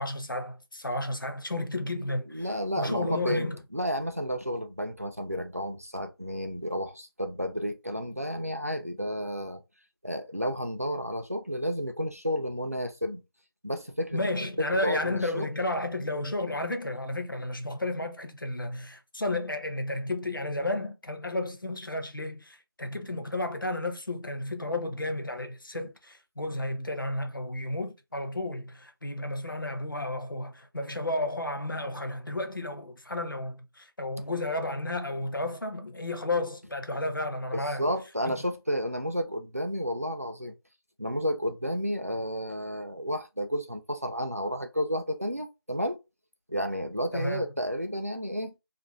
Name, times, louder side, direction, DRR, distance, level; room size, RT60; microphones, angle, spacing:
voice 1, 0.0-2.5 2.8-3.6 14.1-37.9 38.3-38.4 47.1-47.5, left 2 dB, 55° left, 0.6 m, -32 dB
voice 2, 2.3-9.6 10.0-13.2 13.6-14.2 14.6-15.5 37.5-40.5 41.0-46.0 46.5-48.5, equal, 40° right, 0.3 m, -31 dB
2.4 x 2.2 x 2.9 m
figure-of-eight pair, 180°, 13 cm